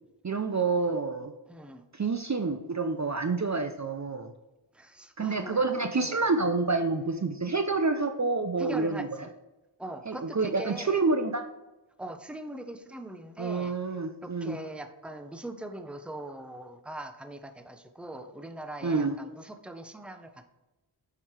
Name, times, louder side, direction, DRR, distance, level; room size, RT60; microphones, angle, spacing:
voice 1, 0.2-1.3 1.9-4.3 5.2-9.3 10.1-11.4 13.4-14.6 18.8-19.1, right 3 dB, 35° right, 7 dB, 0.6 m, -28 dB
voice 2, 1.5-1.8 4.7-5.6 5.9-6.2 8.6-9.3 9.8-11.0 12.0-13.8 14.2-20.5, right 1 dB, ahead, 8 dB, 0.8 m, -41 dB
7.8 x 5.9 x 4.7 m, 1.0 s
wide cardioid pair, 40°, 48 cm